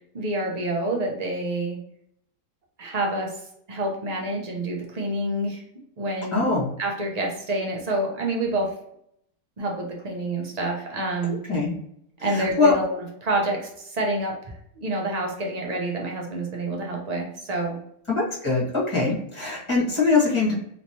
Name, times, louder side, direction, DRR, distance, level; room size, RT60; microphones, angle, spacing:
voice 1, 0.1-1.8 2.8-3.4 3.7-5.6 6.0-6.5 6.8-8.7 9.6-11.4 12.2-12.9 13.2-17.8, right 2 dB, 45° right, -1 dB, 0.5 m, -28 dB
voice 2, 6.3-6.7 11.5-11.7 12.3-12.7 18.1-20.6, left 3 dB, 20° left, -6 dB, 1.3 m, -22 dB
3.1 x 3.0 x 2.8 m, 0.72 s
omnidirectional pair, 1.6 m